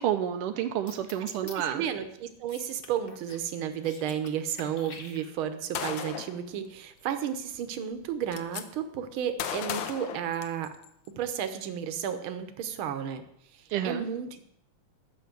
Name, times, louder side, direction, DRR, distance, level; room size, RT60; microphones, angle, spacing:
voice 1, 0.0-1.8 13.7-14.1, right 10 dB, 90° right, 6 dB, 1.7 m, -29 dB
sound 1, 0.9-1.6 2.5-3.5 3.7-4.3 4.6-5.6, left 4 dB, 40° left, 0.8 m, -47 dB
voice 2, 1.2-10.7 11.2-13.2 13.8-14.5, right 9 dB, 70° right, 9 dB, 1.8 m, -33 dB
Gunshot gunfire, 5.7-6.4 7.5-7.6 7.9-8.6 9.4-10.9, left 9 dB, 70° left, 1.5 m, -35 dB
12.0 x 6.3 x 7.6 m, 0.74 s
omnidirectional pair, 2.4 m